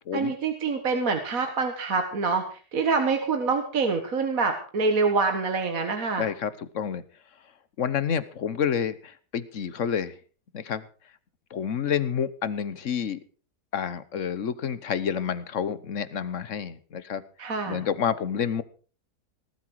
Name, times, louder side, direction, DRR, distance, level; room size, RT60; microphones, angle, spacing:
voice 1, 0.1-6.3 17.4-17.8, right 4 dB, 60° right, 6 dB, 1.9 m, -26 dB
voice 2, 6.2-7.0 7.8-10.1 10.5-10.8 11.5-13.2 13.7-17.2 17.7-18.6, left 8 dB, 55° left, 16 dB, 1.3 m, -29 dB
19.0 x 12.5 x 4.7 m, 0.40 s
omnidirectional pair, 1.7 m